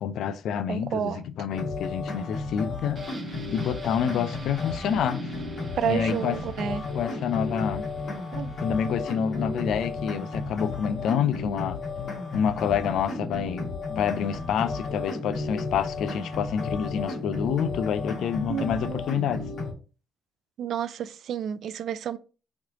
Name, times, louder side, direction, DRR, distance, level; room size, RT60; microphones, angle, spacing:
voice 1, 0.0-3.0 3.5-5.3 5.8-6.4 6.9-7.9 8.6-11.8 12.3-19.4, left 8 dB, 75° left, 0.4 m, -28 dB
voice 2, 0.7-1.2 5.7-6.9 8.3-8.5 18.5-19.0 20.6-22.2, right 9 dB, 70° right, 0.3 m, -30 dB
sound 1, 1.5-19.7, left 3 dB, 60° left, 1.2 m, -33 dB
sound 2, 3.0-12.6 12.9-13.0, right 4 dB, 40° right, 0.8 m, -49 dB
3.2 x 3.0 x 3.7 m
cardioid pair, 90°, 0 cm